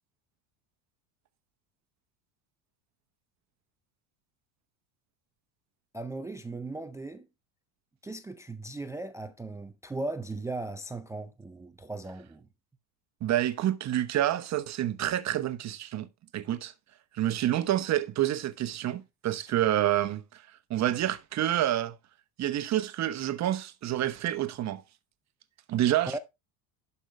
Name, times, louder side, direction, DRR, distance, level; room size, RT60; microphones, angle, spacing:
voice 1, 5.9-7.3 8.0-12.5 26.1-26.2, right 2 dB, 5° right, 0.4 m, -37 dB
voice 2, 13.2-16.1 16.3-16.7 17.1-20.4 20.7-22.0 22.4-24.8 25.7-26.2, right 12 dB, 35° right, 1.0 m, -28 dB
11.5 x 5.6 x 3.2 m
supercardioid pair, 125°, 46 cm